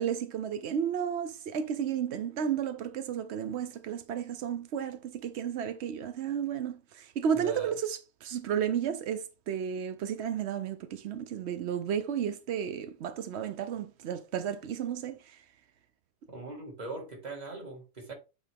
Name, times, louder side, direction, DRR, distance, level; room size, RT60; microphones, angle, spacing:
voice 1, 0.0-15.2, right 8 dB, 80° right, 0.6 m, -33 dB
voice 2, 7.3-7.8 16.3-18.1, right 3 dB, 25° right, 2.0 m, -41 dB
8.1 x 4.1 x 3.5 m
omnidirectional pair, 1.9 m